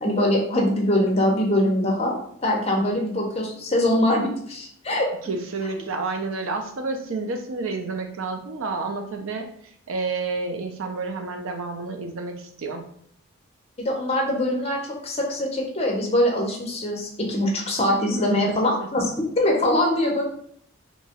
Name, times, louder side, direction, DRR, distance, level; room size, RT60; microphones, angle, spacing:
voice 1, 0.0-5.1 13.8-20.2, left 1 dB, 30° left, -1 dB, 0.5 m, -23 dB
voice 2, 5.2-9.5 9.9-12.8 18.3-18.4 18.8-18.9, right 3 dB, 70° right, 5 dB, 0.4 m, -30 dB
2.9 x 2.3 x 2.8 m, 0.67 s
head